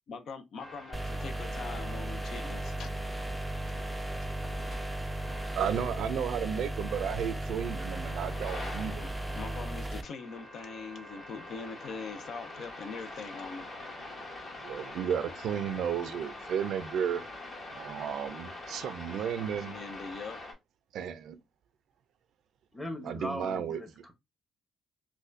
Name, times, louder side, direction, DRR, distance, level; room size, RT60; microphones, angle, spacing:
voice 1, 0.1-2.9 9.0-13.7 19.6-20.4, left 5 dB, 65° left, 0.5 m, -42 dB
sound 1, 0.6-20.5, left 2 dB, 45° left, 1.5 m, -45 dB
sound 2, 0.9-10.0, right 1 dB, 5° right, 0.4 m, -36 dB
voice 2, 5.6-9.1 14.6-17.2 17.7-19.8 20.9-21.4 23.0-23.8, right 8 dB, 75° right, 0.4 m, -33 dB
voice 3, 22.7-24.1, left 1 dB, 10° left, 1.0 m, -39 dB
4.1 x 2.2 x 2.5 m
cardioid pair, 90°, 0 cm